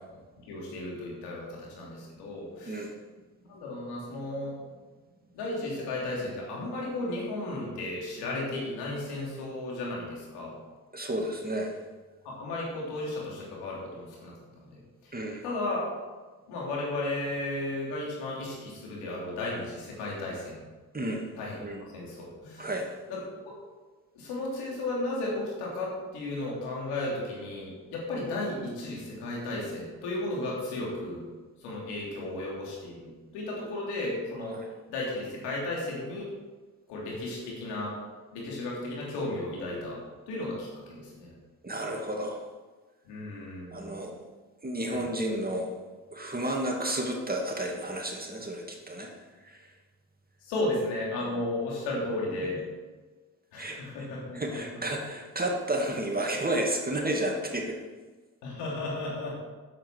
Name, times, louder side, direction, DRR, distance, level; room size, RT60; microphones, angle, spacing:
voice 1, 0.5-2.8 3.5-4.5 5.3-10.5 12.2-14.3 14.7-15.1 15.4-15.9 16.5-20.6 21.4-21.6 21.9-22.7 23.1-23.2 24.1-31.2 31.6-34.6 34.9-36.3 36.9-37.9 38.3-40.0 40.3-41.3 43.0-44.0 44.9-45.0 50.5-52.6 53.5-54.6 58.4-59.3, left 2 dB, 90° left, -3 dB, 3.1 m, -34 dB
voice 2, 10.9-11.8 15.1-15.4 20.9-21.3 21.6-21.8 22.6-22.9 34.5-34.7 41.6-42.4 43.7-44.1 44.6-45.7 46.1-49.1 49.4-49.7 51.3-51.4 52.4-52.5 53.6-53.8 54.3-57.8, right 1 dB, 25° right, 1 dB, 2.3 m, -31 dB
8.7 x 7.8 x 6.3 m, 1.3 s
supercardioid pair, 50°, 39 cm